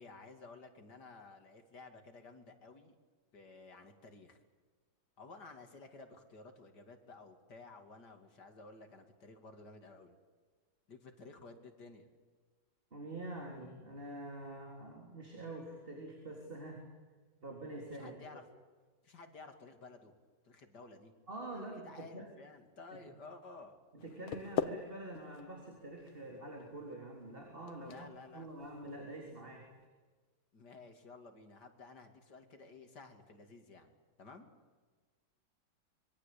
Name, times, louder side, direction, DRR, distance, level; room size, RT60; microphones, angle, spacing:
voice 1, 0.0-3.0 3.3-4.4 5.2-10.1 10.9-12.1 18.0-18.4 19.0-20.1 20.4-21.1 21.5-23.8 27.8-28.5 30.5-33.9 34.2-34.5, left 3 dB, 55° left, 5 dB, 3.2 m, -54 dB
voice 2, 12.9-16.8 17.4-18.4 21.3-22.3 23.9-29.7, right 1 dB, 25° right, 1 dB, 3.9 m, -46 dB
sound 1, 24.0-29.9, left 8 dB, 85° left, 1.9 m, -43 dB
25.5 x 23.0 x 8.6 m, 1.4 s
omnidirectional pair, 2.2 m